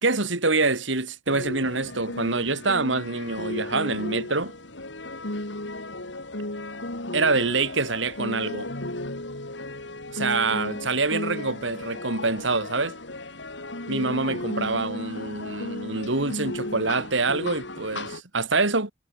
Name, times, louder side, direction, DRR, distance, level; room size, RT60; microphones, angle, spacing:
voice 1, 0.0-4.5 7.1-8.7 10.1-12.9 13.9-18.9, right 3 dB, 75° right, 3.3 m, -25 dB
sound 1, 1.3-18.2, left 1 dB, 65° left, 3.7 m, -35 dB
head